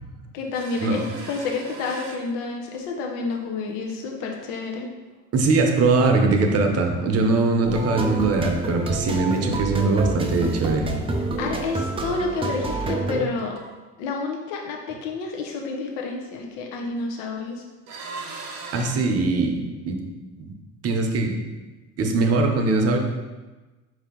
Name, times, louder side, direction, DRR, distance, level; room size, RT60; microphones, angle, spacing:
voice 1, 0.3-4.9 11.1-13.6 14.0-17.6, left 4 dB, 75° left, 1 dB, 0.7 m, -29 dB
sound 1, 0.5-3.0 3.3-3.9 4.3-4.4 6.4-7.6 7.9-9.0 9.4-10.5 11.4-11.5 11.9-12.0 12.2-12.3 12.7-13.1 13.4-13.9 16.6-17.4 17.9-18.9, right 4 dB, 65° right, 1.0 m, -41 dB
voice 2, 5.3-11.0 18.7-19.6 19.8-20.0 20.4-20.5 20.8-21.4 22.0-23.0, right 3 dB, 45° right, 3 dB, 0.8 m, -21 dB
sound 2, 7.6-13.3, right 2 dB, 15° right, 0.4 m, -28 dB
4.7 x 2.7 x 3.7 m, 1.2 s
supercardioid pair, 85°, 36 cm